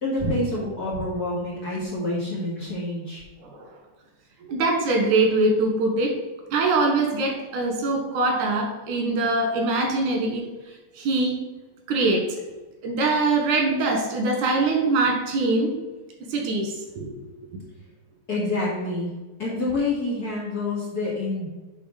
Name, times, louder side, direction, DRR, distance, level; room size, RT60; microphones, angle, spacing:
voice 1, 0.0-3.2 18.3-19.1 19.4-21.5, left 2 dB, 35° left, -6 dB, 1.9 m, -27 dB
voice 2, 4.4-6.1 6.5-10.5 11.0-11.4 11.9-12.2 12.8-15.7 16.3-17.1 17.5-17.6, right 2 dB, 85° right, 1 dB, 2.9 m, -23 dB
8.0 x 3.7 x 5.0 m, 1.2 s
omnidirectional pair, 3.5 m